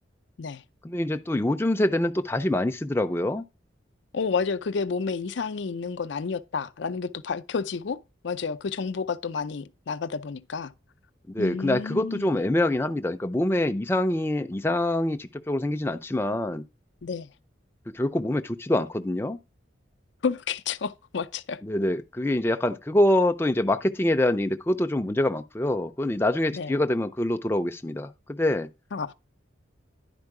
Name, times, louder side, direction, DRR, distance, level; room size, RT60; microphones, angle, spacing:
voice 1, 0.8-3.4 11.3-16.6 17.9-19.4 21.6-28.7, left 1 dB, 10° left, 0.4 m, -25 dB
voice 2, 4.1-8.0 8.2-10.7 11.4-12.4 17.0-17.3 20.2-21.6 26.5-26.7 28.9-29.1, left 5 dB, 65° left, 0.5 m, -30 dB
10.5 x 4.5 x 4.7 m
head